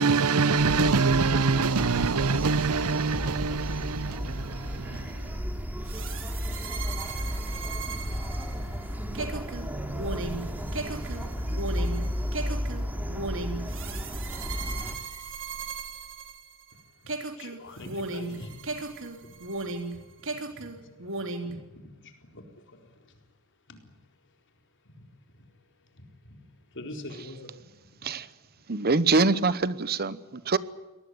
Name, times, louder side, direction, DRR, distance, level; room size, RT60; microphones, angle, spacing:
voice 1, 0.0-5.2, right 4 dB, 75° right, 0.9 m, -25 dB
sound 1, 0.6-15.0, equal, 10° right, 2.8 m, -33 dB
sound 2, 5.9-16.7 17.1-19.9 20.2-21.5, right 3 dB, 60° right, 3.6 m, -36 dB
voice 2, 16.7-28.1 28.6-28.7, left 1 dB, 55° left, 4.3 m, -47 dB
voice 3, 28.7-30.6, right 3 dB, 45° right, 0.9 m, -24 dB
23.0 x 19.0 x 9.7 m
head